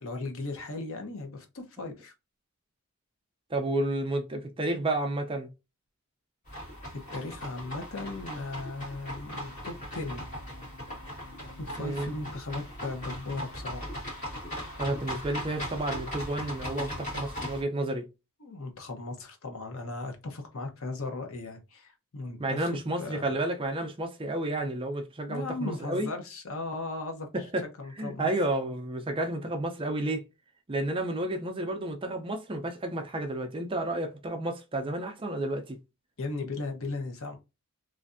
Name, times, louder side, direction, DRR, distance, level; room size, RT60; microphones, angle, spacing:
voice 1, 0.0-2.1 7.1-10.2 11.6-13.9 18.4-23.3 25.3-27.3 27.6-28.3 36.2-37.4, left 2 dB, 70° left, 0.8 m, -37 dB
voice 2, 3.5-5.5 11.8-12.1 14.8-18.1 22.4-26.1 27.3-27.7 28.0-30.2 30.7-35.8, right 1 dB, 25° right, 0.4 m, -31 dB
sound 1, 6.5-17.6, equal, 35° left, 1.9 m, -39 dB
3.2 x 2.5 x 2.5 m
head